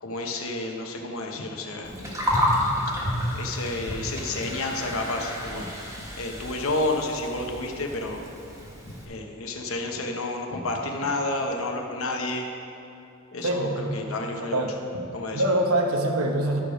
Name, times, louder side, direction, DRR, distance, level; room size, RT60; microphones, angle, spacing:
voice 1, 0.0-1.9 3.3-5.7 6.1-8.2 9.1-12.5 13.3-14.7 15.1-15.4, left 2 dB, 70° left, 2 dB, 1.0 m, -30 dB
Gurgling, 1.8-9.0, left 1 dB, 15° right, 1.5 m, -30 dB
voice 2, 13.4-14.0 14.4-14.7 15.3-16.6, right 1 dB, 85° right, 2 dB, 1.0 m, -24 dB
11.5 x 5.0 x 5.0 m, 2.8 s
head